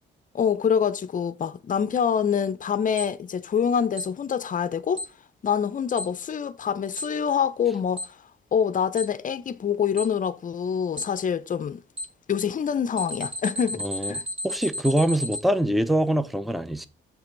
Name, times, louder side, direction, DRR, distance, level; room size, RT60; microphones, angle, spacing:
voice 1, 0.3-5.0 5.4-8.1 8.5-11.8 12.3-14.2, left 7 dB, 40° left, 0.6 m, -25 dB
Alarm, 3.0-3.1 4.0-4.1 5.0-5.1 6.0-6.1 7.0-7.1 8.0-8.1 9.0-9.1 10.0-10.1 11.0-11.1 12.0-12.1 13.0-15.4, left 1 dB, 30° right, 2.5 m, -31 dB
voice 2, 13.8-14.1 14.4-16.9, right 1 dB, ahead, 0.6 m, -24 dB
7.1 x 3.4 x 5.8 m
cardioid pair, 90°, 20 cm